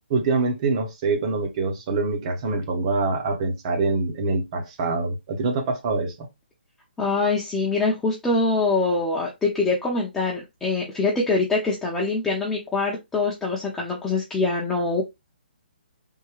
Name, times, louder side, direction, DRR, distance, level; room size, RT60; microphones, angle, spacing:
voice 1, 0.1-6.3, right 3 dB, 35° right, 0.9 m, -25 dB
voice 2, 7.0-15.0, left 3 dB, 5° left, 0.6 m, -24 dB
3.6 x 2.2 x 3.0 m
hypercardioid pair, 145°, 6 cm